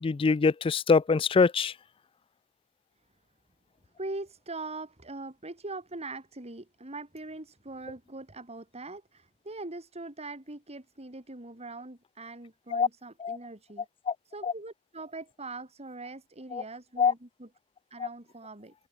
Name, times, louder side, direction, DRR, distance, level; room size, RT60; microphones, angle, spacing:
voice 1, 0.0-1.7 12.7-12.9 13.2-13.4 14.1-14.2 17.0-17.1, left 5 dB, 25° left, 0.3 m, -23 dB
voice 2, 4.0-13.9 14.2-17.5 17.9-18.7, right 2 dB, 30° right, 3.1 m, -42 dB
head